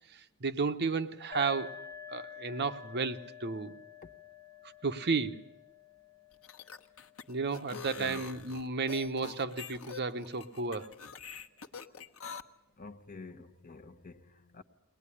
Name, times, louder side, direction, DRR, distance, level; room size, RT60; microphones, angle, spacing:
voice 1, 0.1-1.8 2.1-3.7 4.8-5.4 7.3-10.9, right 4 dB, 50° right, 1.0 m, -33 dB
sound 1, 1.3-8.8, left 7 dB, 15° left, 0.9 m, -50 dB
sound 2, 6.3-12.4, left 5 dB, 75° left, 1.1 m, -45 dB
voice 2, 7.7-8.3 12.8-14.6, left 3 dB, 40° left, 1.1 m, -49 dB
22.0 x 19.0 x 9.9 m
head